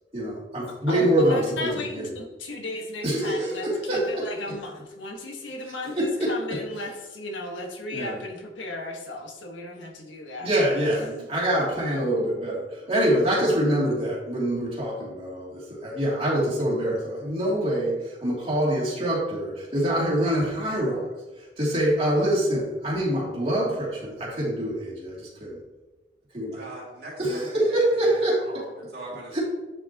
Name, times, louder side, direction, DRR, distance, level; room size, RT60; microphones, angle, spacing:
voice 1, 0.1-2.1 3.0-4.3 6.0-6.3 7.9-8.2 10.4-21.1 21.6-25.6 26.3-26.6 27.2-28.3 29.3-29.4, right 1 dB, 30° right, -6 dB, 2.8 m, -25 dB
voice 2, 0.9-10.5 10.8-11.2, left 2 dB, 85° left, 1 dB, 1.5 m, -35 dB
voice 3, 26.5-28.1 28.5-29.4, right 2 dB, 55° right, -4 dB, 2.6 m, -41 dB
9.6 x 6.1 x 3.0 m, 1.1 s
head